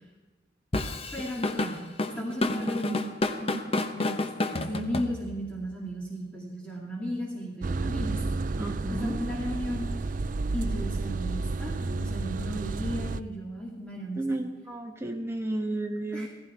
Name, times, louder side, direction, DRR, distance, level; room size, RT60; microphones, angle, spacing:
Drum kit / Drum, 0.7-5.5, left 2 dB, 35° left, 1.0 m, -30 dB
voice 1, 1.1-1.8 2.1-3.1 3.4-3.6 3.9-8.2 8.9-10.1 10.5-14.2 16.1-16.3, equal, 5° left, -3 dB, 2.5 m, -35 dB
sound 1, 7.6-13.2, right 3 dB, 50° right, 0.4 m, -31 dB
voice 2, 8.6-9.2 14.1-16.3, right 2 dB, 15° right, 3 dB, 1.6 m, -32 dB
16.5 x 15.5 x 4.5 m, 1.2 s
head